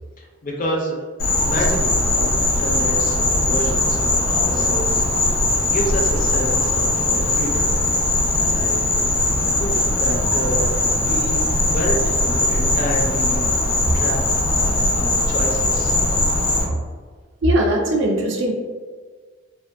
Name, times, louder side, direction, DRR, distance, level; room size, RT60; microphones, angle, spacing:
voice 1, 0.2-1.1 1.4-7.7 8.4-8.8 9.6-16.0, equal, 40° left, -1 dB, 0.4 m, -29 dB
Insect, 1.2-16.6, left 2 dB, 75° left, 0.8 m, -20 dB
voice 2, 17.4-18.5, right 1 dB, 60° right, 1 dB, 0.4 m, -19 dB
2.5 x 2.3 x 2.4 m, 1.5 s
head